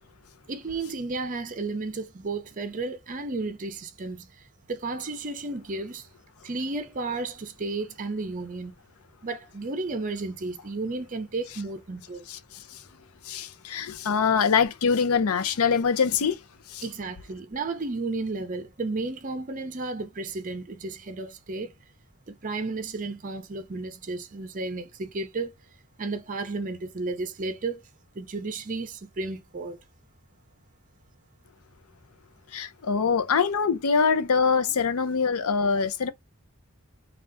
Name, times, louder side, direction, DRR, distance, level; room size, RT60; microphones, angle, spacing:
voice 1, 0.5-4.3 4.7-6.1 6.4-8.7 9.2-12.3 16.8-21.7 22.3-25.5 26.0-27.8 28.2-29.8, right 3 dB, 35° right, 0.5 m, -33 dB
voice 2, 12.3-12.8 13.2-16.4 16.7-16.8 32.5-36.1, left 6 dB, 75° left, 0.5 m, -24 dB
3.3 x 2.4 x 2.6 m
head